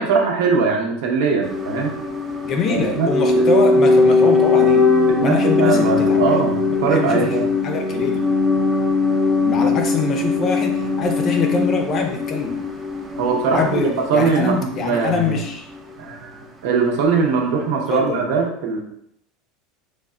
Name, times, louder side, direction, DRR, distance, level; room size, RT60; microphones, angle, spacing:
voice 1, 0.0-1.9 2.7-3.4 5.0-7.5 13.2-13.8 14.1-15.4 16.0-18.8, right 5 dB, 70° right, 1 dB, 0.7 m, -21 dB
sound 1, 1.4-15.5 15.7-15.8, left 3 dB, 15° right, 0.5 m, -20 dB
voice 2, 2.4-4.9 5.2-6.3 6.7-7.4 7.6-8.3 9.4-12.6 13.5-15.7 17.9-18.3, left 4 dB, 35° left, 4 dB, 0.5 m, -24 dB
3.3 x 2.2 x 3.7 m, 0.74 s
supercardioid pair, 150°, 0 cm